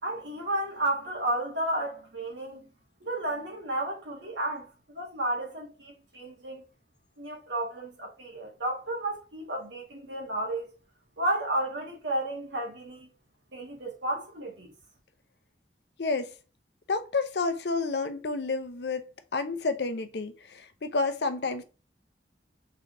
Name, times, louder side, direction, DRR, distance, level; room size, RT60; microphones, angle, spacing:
voice 1, 0.0-2.7 3.0-6.6 7.2-10.7 11.2-13.1 13.5-14.7, right 1 dB, 85° right, 1.8 m, -32 dB
voice 2, 16.0-16.3 16.9-21.6, left 3 dB, 70° left, 0.6 m, -30 dB
3.9 x 3.3 x 2.6 m
head